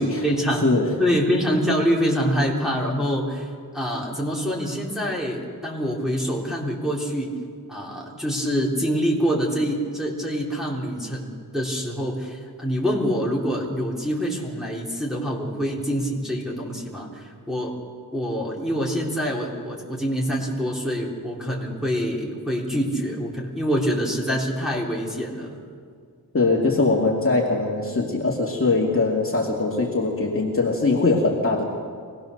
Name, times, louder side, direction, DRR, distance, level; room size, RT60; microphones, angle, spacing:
voice 1, 0.0-3.5 3.7-7.3 7.7-17.8 18.1-25.6, equal, ahead, -4 dB, 3.7 m, -25 dB
voice 2, 0.6-1.0 26.3-31.6, left 3 dB, 35° left, -2 dB, 2.4 m, -21 dB
25.0 x 18.5 x 6.7 m, 2.1 s
wide cardioid pair, 135°, 39 cm